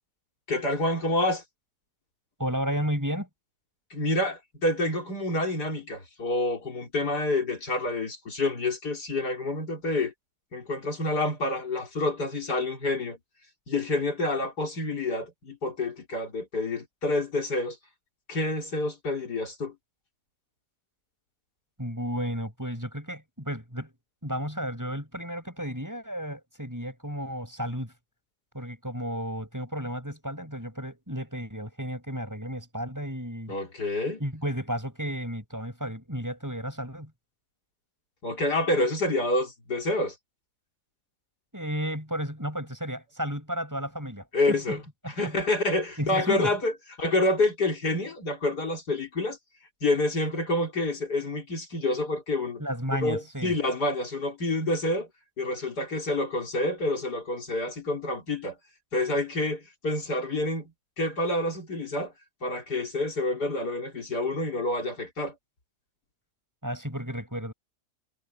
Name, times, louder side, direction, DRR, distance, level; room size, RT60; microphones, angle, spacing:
voice 1, 0.5-1.4 3.9-10.1 10.5-13.2 13.7-17.8 18.3-19.7 33.5-34.2 38.2-40.1 44.3-46.7 47.0-49.4 49.8-52.6 53.0-55.1 55.4-58.6 58.9-60.7 61.0-62.1 62.4-65.3, left 2 dB, 70° left, 4.2 m, -28 dB
voice 2, 2.4-3.3 21.8-23.9 24.2-27.9 28.5-33.5 34.2-37.1 41.5-44.8 45.2-45.3 46.0-46.5 52.6-53.5 66.6-67.5, equal, 10° right, 6.0 m, -33 dB
omnidirectional pair, 1.8 m